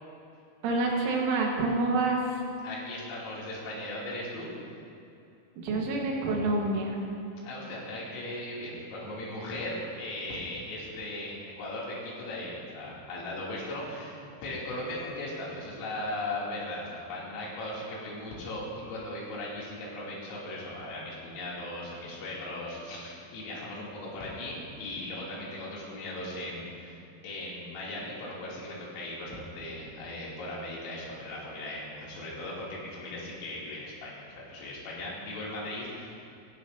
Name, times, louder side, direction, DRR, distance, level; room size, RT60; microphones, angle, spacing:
voice 1, 0.6-2.2 5.6-7.0, right 3 dB, 75° right, -1 dB, 3.9 m, -27 dB
voice 2, 2.6-4.5 7.4-27.0 27.2-36.2, left 1 dB, 85° left, -6 dB, 5.5 m, -38 dB
17.0 x 15.5 x 2.8 m, 2.7 s
omnidirectional pair, 5.8 m